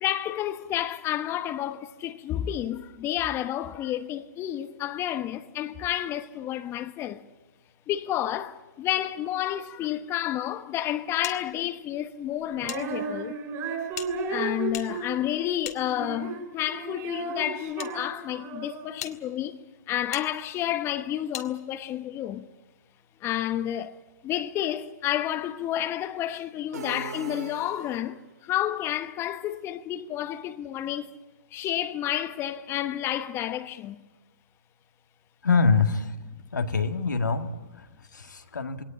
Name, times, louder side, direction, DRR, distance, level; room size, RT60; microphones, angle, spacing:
voice 1, 0.0-7.2 7.9-13.4 14.3-19.6 19.9-22.5 23.2-24.0 24.2-31.1 31.5-34.0, left 12 dB, 25° left, 1.0 m, -30 dB
sound 1, 11.2-12.8 13.1-13.2 13.9-16.4 17.2-17.9 18.5-18.6 19.0-19.2 20.1-20.3 21.3-21.5, left 9 dB, 60° left, 1.9 m, -40 dB
Female singing, 12.6-19.0, right 4 dB, 35° right, 5.2 m, -34 dB
sound 2, 26.7-28.3, right 6 dB, 65° right, 2.9 m, -40 dB
voice 2, 35.4-36.2 36.5-38.8, left 4 dB, 80° left, 1.9 m, -25 dB
21.5 x 18.5 x 8.7 m
figure-of-eight pair, 120°, 10 cm